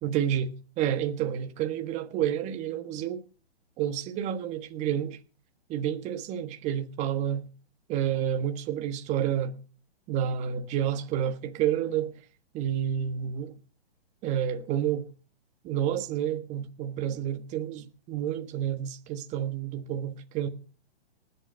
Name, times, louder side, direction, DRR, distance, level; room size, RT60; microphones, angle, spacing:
voice 1, 0.0-3.2 3.8-5.2 5.7-7.4 7.9-9.6 10.1-12.2 12.5-13.5 14.2-15.0 15.6-20.5, right 10 dB, 20° right, 1.5 m, -29 dB
19.5 x 8.2 x 5.6 m
hypercardioid pair, 150°, 32 cm